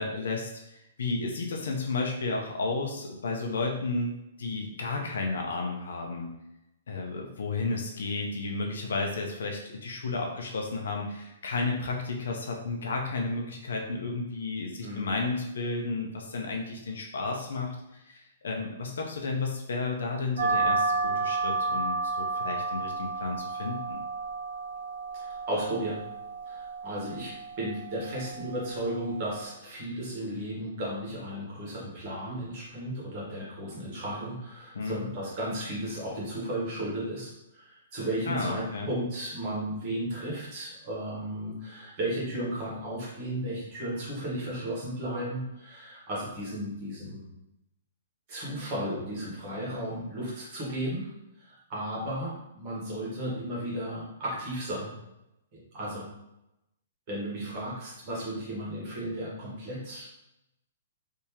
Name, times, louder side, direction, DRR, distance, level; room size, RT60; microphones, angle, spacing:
voice 1, 0.0-4.1 4.4-6.3 6.9-24.0 34.7-35.1 38.3-38.9, left 3 dB, 80° left, 1 dB, 0.6 m, -32 dB
sound 1, 20.4-29.4, right 3 dB, 80° right, 1.0 m, -32 dB
voice 2, 25.1-26.0 26.5-47.3 48.3-51.1 51.4-54.9 55.5-56.1 57.1-60.2, right 1 dB, 30° right, -5 dB, 1.2 m, -34 dB
3.5 x 2.8 x 2.9 m, 0.88 s
hypercardioid pair, 180°, 0 cm